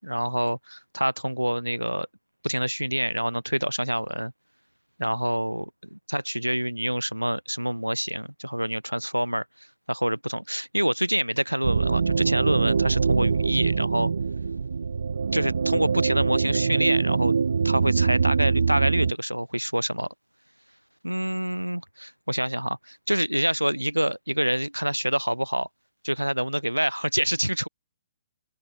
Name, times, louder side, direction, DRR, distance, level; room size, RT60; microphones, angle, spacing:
voice 1, 0.0-2.1 2.4-4.3 5.0-5.6 5.9-9.4 9.9-14.1 15.3-17.3 17.6-20.1 21.0-25.7 26.0-27.7, equal, 90° right, 1.4 m, -26 dB
sound 1, 11.6-19.1, right 5 dB, 65° right, 2.4 m, -24 dB
open air
figure-of-eight pair, 125°, 0 cm